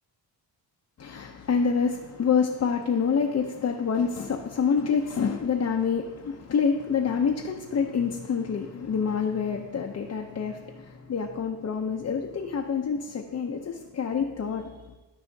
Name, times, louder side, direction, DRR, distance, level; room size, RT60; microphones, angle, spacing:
voice 1, 1.0-14.8, left 6 dB, 35° left, 2 dB, 0.6 m, -27 dB
13.0 x 5.5 x 2.7 m, 1.2 s
cardioid pair, 105°, 45 cm